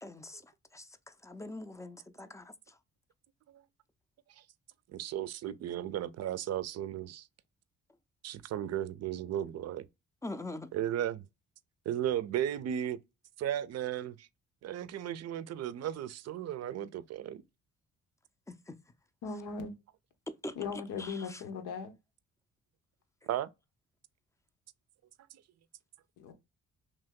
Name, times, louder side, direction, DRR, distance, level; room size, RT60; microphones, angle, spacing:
voice 1, 0.0-0.4 0.7-0.9 1.2-2.8 10.2-10.7 18.5-18.8 20.4-20.5 21.0-21.4, left 2 dB, 10° left, 0.4 m, -43 dB
voice 2, 4.9-7.3 8.2-9.9 10.7-11.2 11.9-13.0 13.4-14.3 14.6-17.4 23.2-23.5, right 11 dB, 60° right, 0.5 m, -35 dB
voice 3, 19.2-19.7 20.5-21.9 26.2-26.3, left 5 dB, 85° left, 0.9 m, -38 dB
3.0 x 2.7 x 3.5 m
cardioid pair, 90°, 30 cm